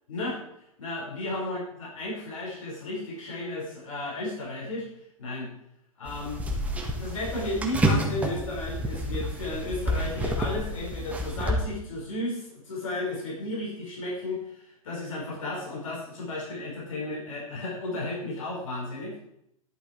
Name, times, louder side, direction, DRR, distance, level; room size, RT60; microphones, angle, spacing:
voice 1, 0.1-0.4 0.8-4.9 5.2-5.5 6.0-6.4 6.8-19.3, left 1 dB, 65° left, -4 dB, 4.9 m, -34 dB
sound 1, 6.1-11.5, equal, 10° right, 1.8 m, -29 dB
11.0 x 8.1 x 4.5 m, 0.77 s
figure-of-eight pair, 105°, 18 cm